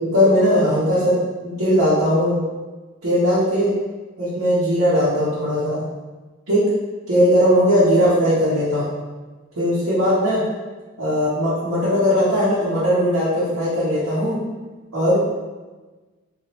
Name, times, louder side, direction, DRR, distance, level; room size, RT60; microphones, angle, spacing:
voice 1, 0.0-1.2 1.4-2.4 3.0-3.7 4.2-5.8 6.5-6.7 7.1-8.8 9.6-10.4 11.0-14.4 14.9-15.2, equal, 90° right, -11 dB, 1.0 m, -18 dB
3.0 x 2.5 x 2.9 m, 1.3 s
head